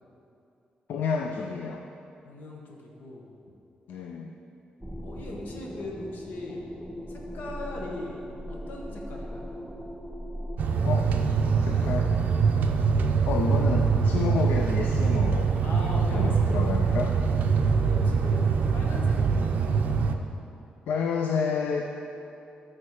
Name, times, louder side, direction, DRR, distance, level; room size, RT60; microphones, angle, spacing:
voice 1, 0.9-1.8 3.9-4.3 10.8-11.2 11.6-12.2 13.3-15.5 16.1-17.2 20.9-21.9, left 5 dB, 85° left, 2 dB, 0.5 m, -30 dB
voice 2, 2.2-3.3 5.0-6.7 7.1-9.5 12.9-13.0 15.6-17.0 17.6-19.8, left 2 dB, 70° left, -1 dB, 1.4 m, -40 dB
sound 1, 4.8-10.6, equal, ahead, 0.4 m, -39 dB
sound 2, 10.6-20.2, right 5 dB, 60° right, 0.5 m, -23 dB
13.0 x 4.4 x 4.8 m, 2.7 s
wide cardioid pair, 180°, 3 cm